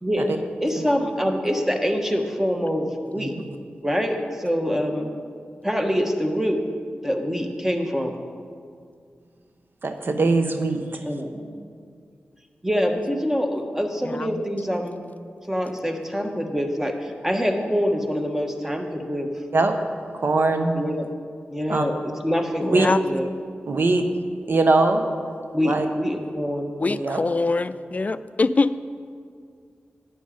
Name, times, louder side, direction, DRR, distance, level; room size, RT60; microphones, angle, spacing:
voice 1, 0.0-3.3 3.8-5.1 5.6-6.6 7.0-8.2 11.0-11.5 12.6-15.1 15.5-19.3 20.7-21.1 21.5-23.3 25.5-27.2, equal, 10° right, 4 dB, 1.3 m, -25 dB
voice 2, 9.8-11.0 19.5-19.8 20.2-20.7 21.7-21.8 22.7-22.9 23.7-24.1 24.5-25.0 25.6-25.9 27.0-27.2, right 3 dB, 60° right, 6 dB, 1.0 m, -21 dB
voice 3, 14.1-14.4 22.6-23.0 26.8-28.7, left 3 dB, 40° left, 14 dB, 0.4 m, -24 dB
10.5 x 8.7 x 5.2 m, 2.2 s
cardioid pair, 50°, 4 cm